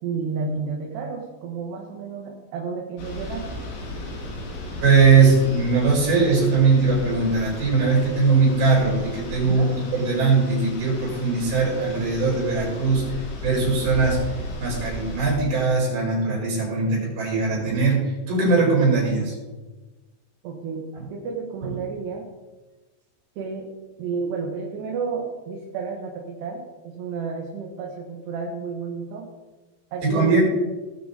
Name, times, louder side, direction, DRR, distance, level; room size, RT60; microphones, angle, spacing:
voice 1, 0.0-3.5 9.4-9.7 20.4-22.3 23.4-23.7 24.0-29.3 29.9-30.4, right 5 dB, 75° right, -1 dB, 3.4 m, -31 dB
sound 1, 3.0-15.3, left 1 dB, 75° left, 4.4 m, -35 dB
voice 2, 4.8-14.3 14.6-19.4 30.0-30.4, right 4 dB, 55° right, -5 dB, 6.2 m, -20 dB
19.5 x 6.7 x 4.1 m, 1.2 s
omnidirectional pair, 5.1 m